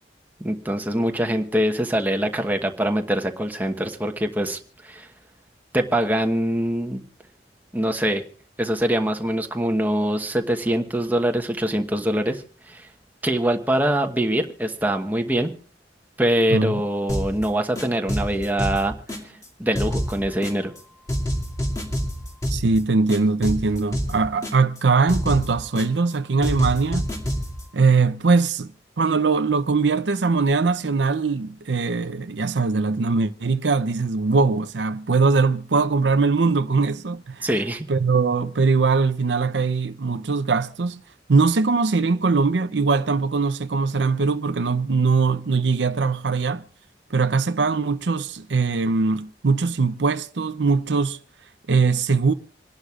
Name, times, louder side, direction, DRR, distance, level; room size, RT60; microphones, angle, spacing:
voice 1, 0.4-5.1 5.7-7.0 7.7-8.2 8.6-12.9 13.2-15.5 16.2-18.9 19.6-20.7 37.4-37.9, right 1 dB, 10° right, 1.1 m, -23 dB
voice 2, 16.5-16.8 22.5-27.1 27.7-37.5 37.9-41.0 41.3-46.6 47.1-51.2 51.7-52.3, right 4 dB, 80° right, 0.6 m, -21 dB
sound 1, 17.1-17.4 17.7-19.5 19.7-20.8 21.1-22.8 23.1-24.8 25.1-26.1 26.4-27.6, equal, 20° left, 2.3 m, -28 dB
27.0 x 11.5 x 2.4 m
head